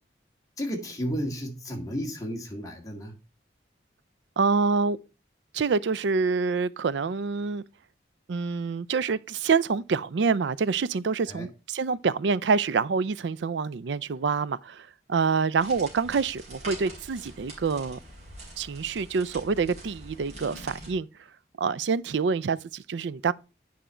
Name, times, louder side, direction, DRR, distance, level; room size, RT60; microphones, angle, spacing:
voice 1, 0.6-3.1 11.3-11.5, equal, 20° left, 1.9 m, -33 dB
voice 2, 4.4-5.0 5.5-7.6 8.3-18.0 18.6-21.1 21.6-23.3, right 5 dB, 75° right, 0.4 m, -26 dB
sound 1, 15.6-20.9, right 1 dB, 35° right, 3.4 m, -44 dB
9.2 x 5.0 x 4.3 m
head